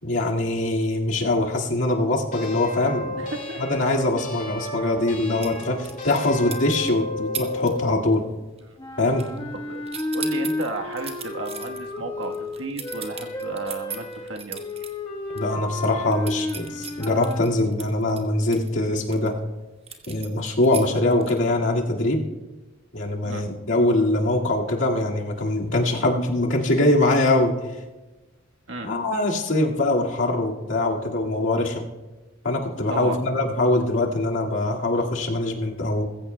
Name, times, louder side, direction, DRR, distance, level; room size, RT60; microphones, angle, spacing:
voice 1, 0.0-3.2 3.6-8.2 9.0-9.2 15.3-19.3 20.1-22.2 22.9-27.5 28.8-31.9 32.4-36.0, left 2 dB, 75° left, -1 dB, 2.0 m, -23 dB
sound 1, 2.3-8.0, left 1 dB, 45° left, 2.3 m, -33 dB
voice 2, 3.2-3.6 9.7-9.8 10.1-14.6 23.2-23.4 28.7-28.9 32.9-33.2, right 2 dB, 80° right, 3 dB, 1.3 m, -33 dB
sound 2, 5.4-6.3 6.5-6.9 7.3-7.7 8.0-8.3 8.6-9.6 9.9-14.9 15.3-15.4 15.7-19.3 19.9-21.5, right 7 dB, 30° right, 1.3 m, -37 dB
sound 3, 8.8-17.5, left 2 dB, 25° left, 1.2 m, -32 dB
21.5 x 15.0 x 2.2 m, 1.2 s
head